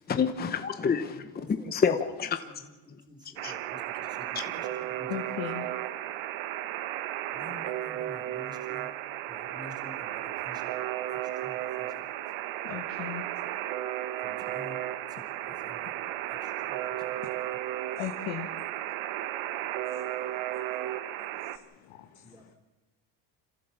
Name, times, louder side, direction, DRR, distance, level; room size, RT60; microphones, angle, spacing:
voice 1, 0.1-2.4 2.9-3.0 3.4-3.8 4.3-4.5, left 6 dB, 20° left, 0.9 m, -29 dB
voice 2, 1.1-1.7 2.4-2.6 2.8-5.2 7.3-8.9 9.3-12.1 13.4-13.5 14.2-14.8 15.1-17.2 22.2-22.4, left 1 dB, 10° right, 3.6 m, -50 dB
Alarm, 3.4-21.6, right 13 dB, 80° right, 1.3 m, -34 dB
voice 3, 5.1-5.7 12.6-13.3 18.0-18.5 19.8-20.6 21.2-22.5, left 12 dB, 75° left, 1.8 m, -39 dB
27.5 x 15.0 x 7.3 m
cardioid pair, 170°, 46 cm